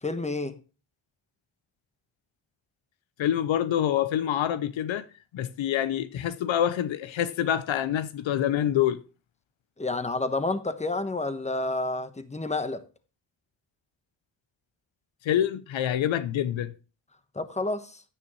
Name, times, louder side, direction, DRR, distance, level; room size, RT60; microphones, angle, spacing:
voice 1, 0.0-0.6 9.8-12.8 17.3-18.0, left 2 dB, 15° left, 1.1 m, -29 dB
voice 2, 3.2-5.1 5.3-9.0 15.2-16.7, left 10 dB, 80° left, 0.7 m, -26 dB
10.0 x 9.2 x 3.1 m
cardioid pair, 60°, 45 cm